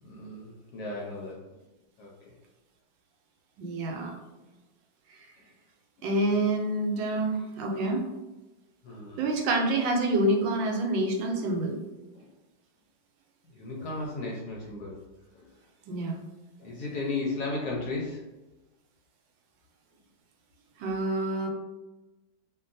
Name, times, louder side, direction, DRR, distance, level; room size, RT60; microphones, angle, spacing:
voice 1, 0.0-1.4 2.0-2.1 6.0-6.1 8.8-9.2 12.1-12.3 13.5-15.0 15.3-15.5 16.0-16.1 16.6-18.2, left 3 dB, 70° left, -3 dB, 0.9 m, -35 dB
voice 2, 3.6-4.1 6.0-8.0 9.2-11.8 15.9-16.2 20.8-21.5, right 2 dB, 80° right, 1 dB, 1.2 m, -27 dB
2.8 x 2.6 x 2.5 m, 1.1 s
omnidirectional pair, 2.0 m